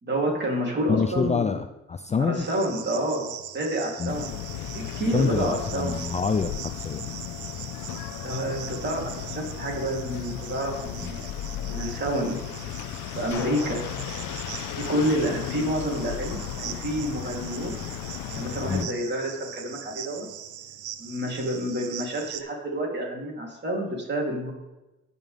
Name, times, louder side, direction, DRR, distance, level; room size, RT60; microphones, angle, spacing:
voice 1, 0.0-1.5 2.2-4.3 4.7-6.0 8.2-11.3 11.7-12.4 13.1-13.9 14.7-17.8 18.3-20.3 21.0-24.5, right 1 dB, 35° right, -1 dB, 3.3 m, -29 dB
voice 2, 0.9-2.5 4.0-4.2 5.1-6.5 6.8-7.1 11.0-11.1 18.7-18.9, left 5 dB, 25° left, 8 dB, 0.4 m, -26 dB
Cricket, 2.4-22.4, right 10 dB, 80° right, 0.8 m, -41 dB
sound 1, 4.1-18.9, left 12 dB, 90° left, 0.5 m, -35 dB
sound 2, 13.3-16.1, left 7 dB, 70° left, 1.0 m, -41 dB
16.0 x 5.5 x 3.5 m, 1.0 s
cardioid pair, 90°, 30 cm